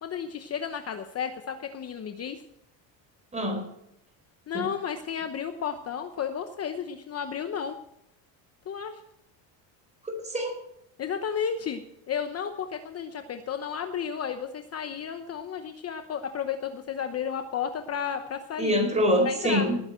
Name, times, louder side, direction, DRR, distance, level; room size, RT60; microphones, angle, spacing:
voice 1, 0.0-2.4 4.5-7.8 8.7-9.0 11.0-11.8 12.1-18.8 19.2-19.6, left 7 dB, 35° left, 7 dB, 0.9 m, -33 dB
voice 2, 3.3-3.7 4.5-4.7 10.0-10.6 18.6-19.8, equal, 15° right, 4 dB, 4.5 m, -25 dB
19.5 x 9.7 x 4.4 m, 0.81 s
cardioid pair, 140°, 46 cm